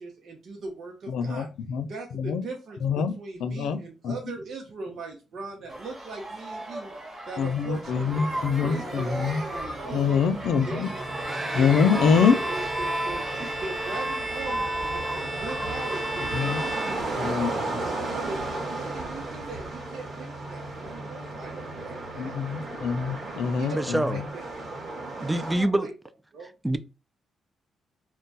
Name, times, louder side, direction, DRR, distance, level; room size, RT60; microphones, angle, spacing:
voice 1, 0.0-1.5 1.9-2.8 3.2-6.9 7.3-9.2 9.5-11.1 11.5-13.3 13.6-22.4 23.2-24.5 25.2-25.9 26.3-26.5, right 3 dB, 65° right, 0.7 m, -40 dB
voice 2, 1.1-1.9 2.2-2.4 2.8-3.1 3.4-3.8 4.0-4.1 7.4-9.4 9.9-10.9 11.5-12.4 16.3-16.6 17.2-17.5 22.2-24.2, left 6 dB, 80° left, 0.4 m, -25 dB
sound 1, 5.7-16.7, right 1 dB, 30° right, 1.2 m, -35 dB
sound 2, 7.8-25.6, right 2 dB, 50° right, 1.3 m, -35 dB
Bowed string instrument, 10.8-17.6, right 1 dB, 15° left, 1.2 m, -34 dB
voice 3, 23.8-24.2 25.2-25.9 26.6-26.8, right 1 dB, 10° right, 0.3 m, -25 dB
2.2 x 2.2 x 3.8 m
cardioid pair, 80°, 0 cm